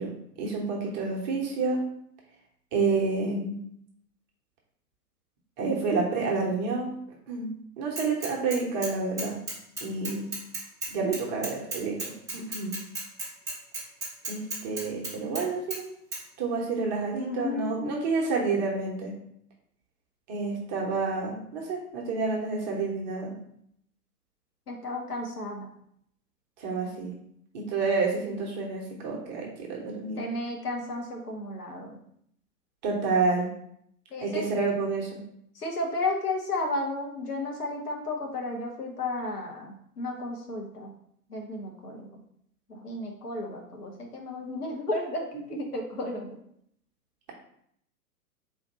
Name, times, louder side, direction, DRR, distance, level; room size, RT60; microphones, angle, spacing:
voice 1, 0.0-1.8 2.7-3.6 5.6-6.9 7.3-7.5 7.8-9.4 9.8-10.3 10.9-12.8 14.3-15.8 16.4-19.1 20.3-23.3 26.6-27.1 27.5-30.2 32.8-33.5 34.2-35.2 45.3-45.6, right 4 dB, 30° right, -2 dB, 1.0 m, -29 dB
Bicycle / Mechanisms, 8.0-8.9 9.2-15.4 15.7-15.8 16.1-16.2, right 3 dB, 5° right, 1.0 m, -34 dB
voice 2, 17.2-18.0 24.7-25.7 30.2-32.0 34.1-34.5 35.5-40.9 41.3-42.2 42.7-46.3, left 2 dB, 75° left, 1 dB, 1.2 m, -33 dB
4.1 x 2.8 x 4.1 m, 0.69 s
figure-of-eight pair, 115°, 46 cm